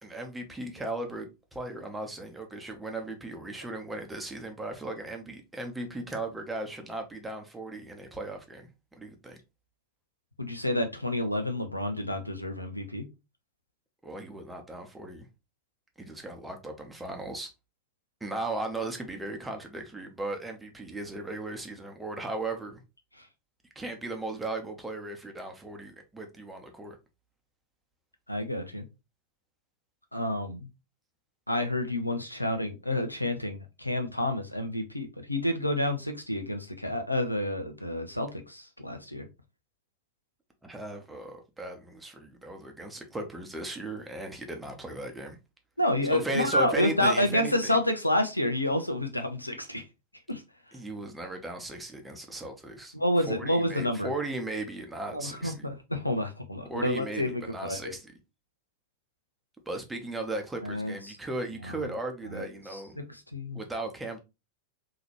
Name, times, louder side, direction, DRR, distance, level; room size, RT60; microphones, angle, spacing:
voice 1, 0.0-9.4 14.0-15.3 16.0-17.5 18.2-22.8 23.7-27.0 40.6-45.4 46.0-47.8 50.7-52.9 53.3-55.7 56.7-58.1 59.7-63.0 63.5-64.2, right 2 dB, 10° right, 0.8 m, -37 dB
voice 2, 10.4-13.0 28.3-28.8 30.1-30.6 31.5-39.3 45.8-49.8 50.3-50.4 52.9-54.1 55.1-57.9 60.6-61.2 61.7-61.8 62.3-62.4 62.7-63.6, left 1 dB, 85° left, 0.6 m, -29 dB
4.0 x 2.8 x 3.0 m
figure-of-eight pair, 90°, 0 cm